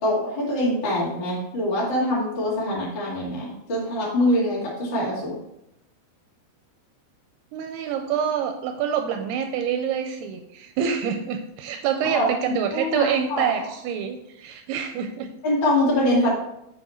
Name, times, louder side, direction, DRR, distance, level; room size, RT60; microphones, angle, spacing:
voice 1, 0.0-5.4 12.1-13.5 15.4-16.3, left 1 dB, 35° left, -7 dB, 2.4 m, -24 dB
voice 2, 7.5-15.3, right 8 dB, 85° right, 6 dB, 2.4 m, -26 dB
8.0 x 5.5 x 4.3 m, 0.82 s
omnidirectional pair, 5.0 m